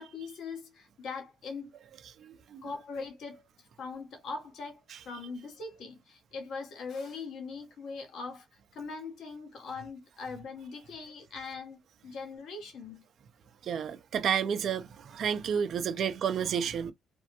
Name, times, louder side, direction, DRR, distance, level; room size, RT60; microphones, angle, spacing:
voice 1, 0.0-1.7 2.6-13.0 15.7-15.8 16.4-16.5, left 4 dB, 70° left, 1.0 m, -41 dB
voice 2, 2.2-2.6 4.9-5.0 13.6-16.9, right 8 dB, 65° right, 0.5 m, -31 dB
3.3 x 2.2 x 2.8 m
supercardioid pair, 65°, 0 cm